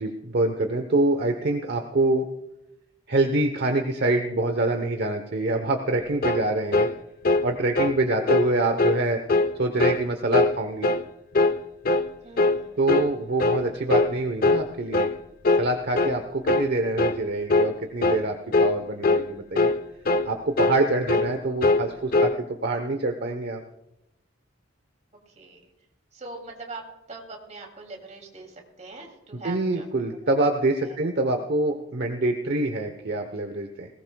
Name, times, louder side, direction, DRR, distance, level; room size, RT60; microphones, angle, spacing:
voice 1, 0.0-2.2 3.1-6.9 7.4-9.2 9.6-10.9 12.8-15.1 15.5-18.3 18.6-19.7 20.2-23.6 29.3-33.9, right 2 dB, 60° right, 5 dB, 1.0 m, -25 dB
sound 1, 6.2-6.5 6.7-6.9 7.2-7.5 7.8-8.0 8.3-8.5 8.8-9.0 9.3-9.5 9.8-10.0 10.3-10.6 10.8-11.1 11.3-11.6 11.9-12.1 12.4-12.6 12.9-13.1 13.4-13.6 13.9-14.1 14.4-14.7 14.9-15.2 15.4-15.7 16.0-16.2 16.5-16.7 17.0-17.2 17.5-17.7 18.0-18.3 18.5-18.8 19.0-19.3 19.6-19.8 20.1-20.3 20.6-20.8 21.1-21.3 21.6-22.4, left 2 dB, 50° left, 0.6 m, -21 dB
voice 2, 12.2-12.9 25.3-25.7 26.1-26.8 27.1-29.9 30.8-31.0, right 3 dB, 40° right, 2 dB, 2.8 m, -42 dB
20.0 x 18.0 x 2.3 m, 0.89 s
head